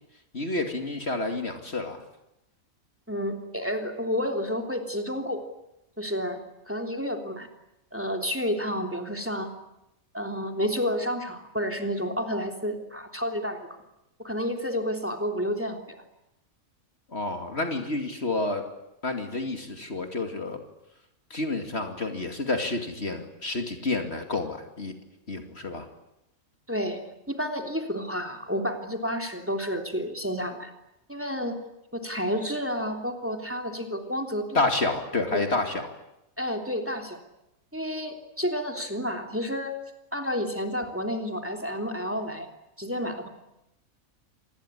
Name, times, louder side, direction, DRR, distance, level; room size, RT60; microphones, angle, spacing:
voice 1, 0.3-2.0 17.1-18.7 19.0-20.6 21.3-24.9 25.3-25.9 34.5-35.9, left 2 dB, 45° left, 5 dB, 2.7 m, -29 dB
voice 2, 3.1-5.4 6.0-6.4 6.7-7.5 7.9-9.5 10.1-13.7 14.2-16.0 26.7-27.0 27.3-30.7 31.1-31.6 31.9-34.6 35.3-35.4 36.4-37.2 37.7-39.8 40.1-42.5 42.8-43.3, equal, 10° right, 4 dB, 3.2 m, -30 dB
27.0 x 20.5 x 9.9 m, 0.89 s
omnidirectional pair, 1.5 m